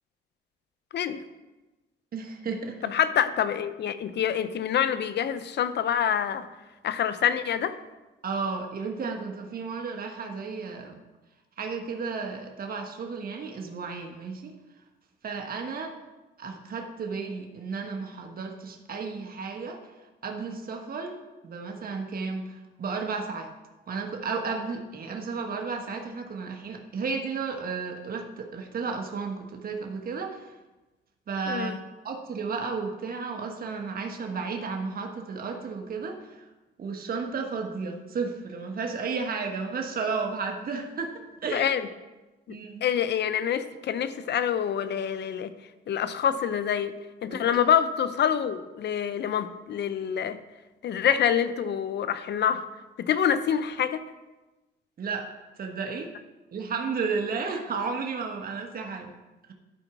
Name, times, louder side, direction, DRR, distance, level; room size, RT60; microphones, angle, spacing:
voice 1, 2.1-2.8 8.2-11.0 11.6-14.5 15.2-16.0 16.4-19.8 20.2-21.2 21.4-23.5 23.9-30.5 31.3-31.8 32.0-36.4 36.8-41.7 42.5-42.8 47.3-47.6 55.0-55.3 55.6-56.1 56.5-59.1, right 4 dB, 50° right, 3 dB, 1.4 m, -33 dB
voice 2, 2.8-6.4 6.8-7.7 31.5-31.8 41.5-41.8 42.5-45.5 45.9-46.9 47.2-50.4 50.8-52.6 53.0-54.0, left 9 dB, 60° left, 12 dB, 0.7 m, -26 dB
12.0 x 4.5 x 6.1 m, 1.1 s
cardioid pair, 90°, 20 cm